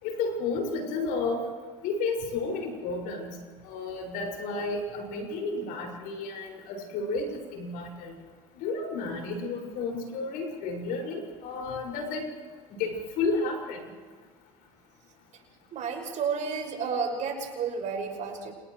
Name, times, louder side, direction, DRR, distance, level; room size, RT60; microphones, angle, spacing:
voice 1, 0.0-1.4 1.8-3.4 3.6-8.2 8.5-12.3 12.7-13.8, left 3 dB, 75° left, 2 dB, 6.0 m, -32 dB
voice 2, 15.7-18.5, right 5 dB, 55° right, 1 dB, 6.2 m, -31 dB
29.0 x 29.0 x 3.2 m, 1.5 s
supercardioid pair, 95°, 15 cm